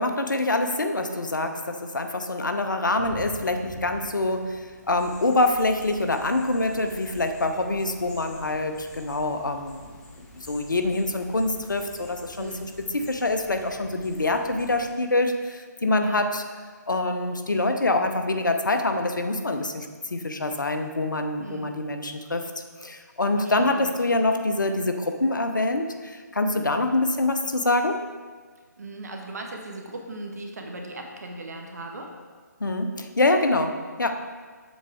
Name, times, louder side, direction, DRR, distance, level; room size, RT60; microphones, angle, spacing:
voice 1, 0.0-9.9 10.2-16.4 16.9-22.4 22.8-28.0 32.6-34.1, left 2 dB, 80° left, 6 dB, 0.7 m, -25 dB
Thunder / Rain, 3.0-8.7, right 1 dB, 40° right, 1.6 m, -45 dB
sound 1, 4.9-14.9, left 1 dB, 5° left, 0.7 m, -48 dB
voice 2, 12.4-12.7 15.9-16.2 21.4-21.8 23.3-23.9 26.5-26.6 28.8-32.2, right 2 dB, 60° right, 2 dB, 1.1 m, -38 dB
7.4 x 6.1 x 3.5 m, 1.5 s
figure-of-eight pair, 145°, 10 cm